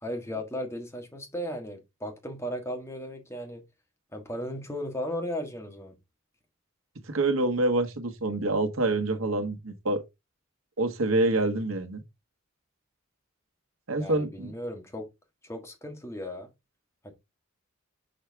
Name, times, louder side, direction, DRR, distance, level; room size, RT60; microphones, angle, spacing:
voice 1, 0.0-3.6 4.1-5.9 14.0-15.1 15.4-16.5 17.0-17.1, equal, 15° left, 1.5 m, -36 dB
voice 2, 7.1-10.0 10.8-12.0 13.9-14.5, right 2 dB, 90° right, 1.2 m, -26 dB
6.4 x 4.6 x 3.4 m
head